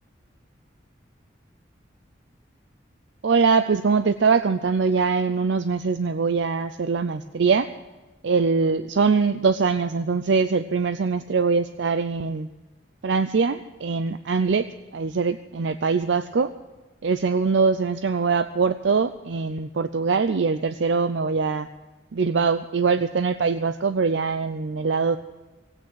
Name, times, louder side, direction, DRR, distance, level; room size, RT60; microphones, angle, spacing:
voice 1, 3.2-7.7 8.2-12.5 13.0-14.7 14.9-16.5 17.0-21.7 22.1-25.2, right 5 dB, 70° right, 11 dB, 0.5 m, -22 dB
16.5 x 8.9 x 9.3 m, 1.1 s
head